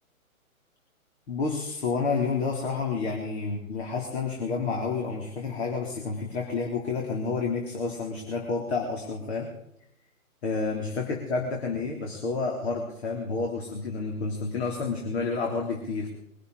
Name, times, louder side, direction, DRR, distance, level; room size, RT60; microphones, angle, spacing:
voice 1, 1.3-9.5 10.4-16.1, left 4 dB, 45° left, 1 dB, 3.4 m, -30 dB
22.5 x 13.0 x 4.1 m, 0.76 s
figure-of-eight pair, 140°, 43 cm